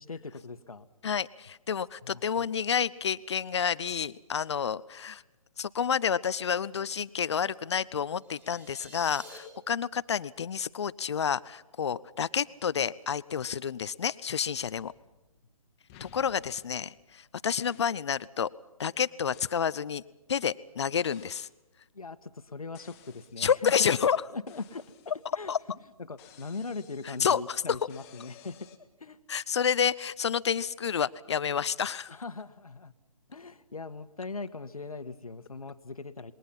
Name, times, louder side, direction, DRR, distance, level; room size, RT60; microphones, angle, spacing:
voice 1, 0.0-0.9 2.0-2.5 21.9-23.9 24.3-24.9 25.3-25.5 26.0-28.7 29.0-29.2 32.1-32.9 33.3-36.3, left 4 dB, 75° left, 12 dB, 1.5 m, -40 dB
voice 2, 1.0-5.2 5.6-14.9 16.0-18.5 18.8-20.0 20.3-21.5 23.4-24.2 25.5-25.6 27.2-27.6 29.3-32.1, left 7 dB, 50° left, 18 dB, 0.7 m, -29 dB
sound 1, 8.2-9.4, equal, 10° right, 4.3 m, -50 dB
sound 2, 14.5-15.5 15.9-17.2 17.6-18.1 19.3-19.6 21.0-21.6 22.7-23.5 24.5-25.6 26.2-28.8, left 9 dB, 25° left, 1.7 m, -57 dB
27.5 x 21.5 x 5.6 m, 1.0 s
figure-of-eight pair, 140°, 19 cm